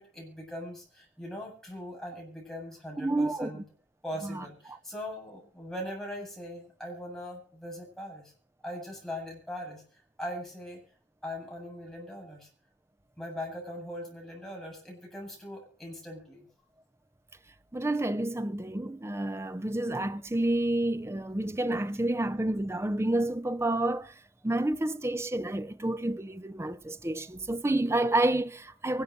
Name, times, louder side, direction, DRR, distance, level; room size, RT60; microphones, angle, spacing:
voice 1, 0.0-3.6 4.0-8.3 8.6-10.8 11.2-12.5 13.2-16.5, equal, ahead, 7.7 m, -40 dB
voice 2, 3.0-3.6 4.2-4.4 17.7-24.1 24.4-29.0, right 1 dB, 15° right, 0.6 m, -29 dB
24.0 x 12.0 x 2.7 m
head